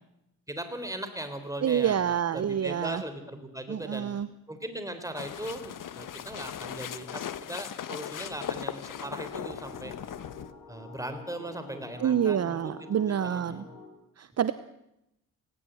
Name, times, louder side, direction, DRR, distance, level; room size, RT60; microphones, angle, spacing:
voice 1, 0.5-2.0 2.3-4.1 4.5-10.0 10.7-12.9 13.2-13.6, right 1 dB, 10° right, 8 dB, 3.9 m, -39 dB
voice 2, 1.6-3.0 3.7-4.3 12.0-13.6 14.2-14.5, right 9 dB, 45° right, 14 dB, 0.8 m, -27 dB
sound 1, 5.2-10.5, left 9 dB, 65° left, 1.2 m, -38 dB
sound 2, 8.9-13.9, left 3 dB, 80° left, 4.8 m, -47 dB
19.0 x 17.5 x 9.1 m, 0.84 s
cardioid pair, 85°, 35 cm